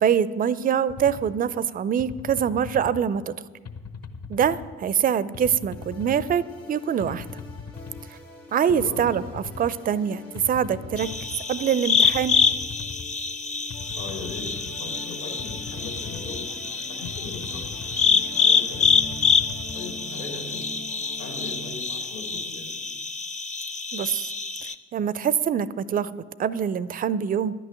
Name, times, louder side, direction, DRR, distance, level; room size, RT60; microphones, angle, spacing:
voice 1, 0.0-3.3 4.3-7.2 8.1-8.2 8.5-11.1 11.5-12.4 23.9-24.3 24.9-27.5, right 8 dB, 25° right, 19 dB, 0.4 m, -24 dB
sound 1, 0.9-1.3 2.0-3.0 3.7-4.7 5.3-6.4 7.0-8.0 8.7-9.7 10.4-11.4 12.0-13.1 13.7-14.7 15.4-16.4 17.1-18.1 18.7-19.8, left 5 dB, 40° left, 1.0 m, -39 dB
sound 2, 5.7-21.7, equal, 85° left, 1.8 m, -44 dB
voice 2, 8.7-9.1 14.0-14.5 14.8-16.5 16.9-17.7 18.0-18.9 19.7-20.7 21.2-22.8, left 5 dB, 65° left, 0 dB, 2.9 m, -39 dB
sound 3, 11.0-24.7, left 5 dB, 20° left, 0.7 m, -26 dB
11.0 x 6.2 x 9.0 m, 1.4 s
figure-of-eight pair, 45°, 38 cm